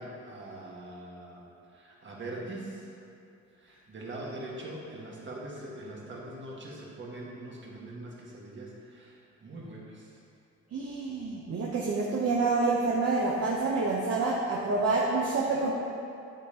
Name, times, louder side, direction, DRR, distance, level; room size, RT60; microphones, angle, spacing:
voice 1, 0.0-2.9 3.5-10.2, right 1 dB, 40° right, -3 dB, 1.7 m, -42 dB
voice 2, 10.7-15.7, right 3 dB, 55° right, -4 dB, 0.9 m, -27 dB
8.0 x 7.9 x 2.9 m, 2.6 s
cardioid pair, 90°, 30 cm